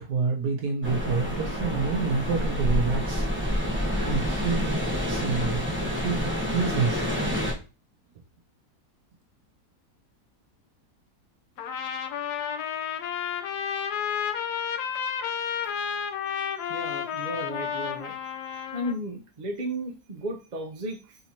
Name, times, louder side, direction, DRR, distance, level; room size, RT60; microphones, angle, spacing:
voice 1, 0.0-3.3 3.9-5.6 5.9-7.1, right 5 dB, 75° right, 3 dB, 1.3 m, -28 dB
sound 1, 0.8-7.5, equal, 10° right, 1.0 m, -28 dB
Trumpet, 11.6-19.0, left 8 dB, 75° left, 1.1 m, -31 dB
voice 2, 16.7-18.2 18.7-21.2, equal, 35° right, 2 dB, 0.8 m, -34 dB
4.2 x 4.1 x 2.9 m, 0.31 s
omnidirectional pair, 1.8 m